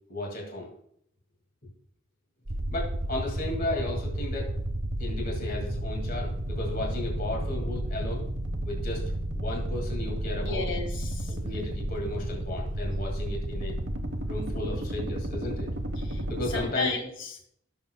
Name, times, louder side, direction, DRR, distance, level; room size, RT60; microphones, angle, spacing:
voice 1, 0.1-0.7 1.6-1.7 2.7-4.6 5.0-8.2 8.6-9.0 9.3-10.6 11.3-13.7 14.3-15.7 16.3-16.9, left 2 dB, 50° left, 0 dB, 2.3 m, -34 dB
sound 1, 2.5-16.7, right 1 dB, 65° right, 1.2 m, -32 dB
voice 2, 10.4-11.4 16.0-17.5, left 3 dB, 70° left, 5 dB, 1.6 m, -34 dB
17.5 x 6.5 x 2.3 m, 0.68 s
head